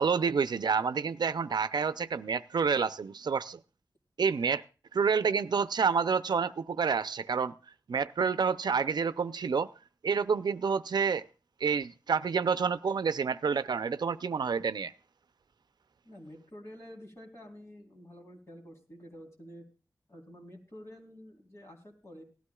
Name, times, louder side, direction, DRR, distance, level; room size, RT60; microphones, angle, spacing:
voice 1, 0.0-3.6 4.2-4.6 4.9-7.5 7.9-9.7 10.0-11.3 11.6-14.9, right 5 dB, 80° right, 0.5 m, -28 dB
voice 2, 16.1-19.6 20.1-22.2, equal, 40° left, 3.5 m, -49 dB
18.0 x 13.0 x 2.3 m
wide cardioid pair, 105°, 7 cm